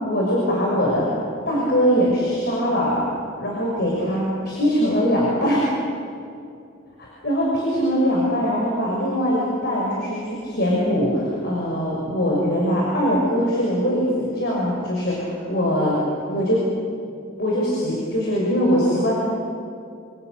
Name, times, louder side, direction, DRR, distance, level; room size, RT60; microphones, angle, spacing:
voice 1, 0.0-1.1 1.5-3.0 3.4-5.6 7.2-16.0 16.3-16.6 17.4-19.2, equal, 55° left, -4 dB, 6.4 m, -22 dB
28.0 x 28.0 x 6.8 m, 2.5 s
head